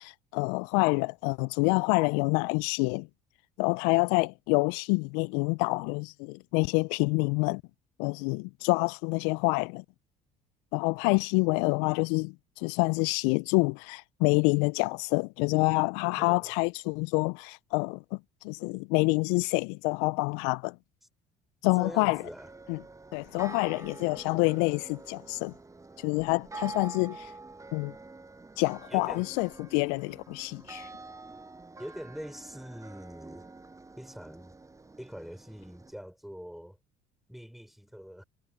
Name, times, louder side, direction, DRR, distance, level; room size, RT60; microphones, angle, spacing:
voice 1, 0.0-3.1 3.6-7.6 8.0-9.8 10.7-18.2 18.4-20.7 21.6-22.2 22.7-22.8 23.1-25.5 26.0-27.3 27.7-27.9 28.6-30.9, left 31 dB, 70° left, 0.5 m, -27 dB
voice 2, 16.2-16.5 21.7-22.5 28.9-29.3 31.8-33.5 34.0-34.6 35.0-36.8 37.3-38.2, equal, ahead, 5.0 m, -44 dB
sound 1, 21.8-35.9, right 3 dB, 20° right, 7.7 m, -47 dB
hypercardioid pair, 60°, 17 cm